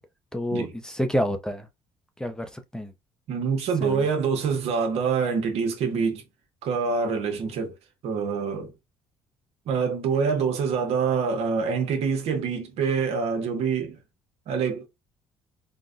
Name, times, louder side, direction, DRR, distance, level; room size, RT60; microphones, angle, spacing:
voice 1, 0.3-1.7 2.2-2.9 3.8-4.1, equal, 5° left, 0.5 m, -28 dB
voice 2, 3.3-6.2 6.6-7.7 8.0-8.7 9.7-14.0 14.5-14.9, right 5 dB, 75° right, 1.0 m, -25 dB
3.8 x 2.2 x 2.5 m
cardioid pair, 95°, 11 cm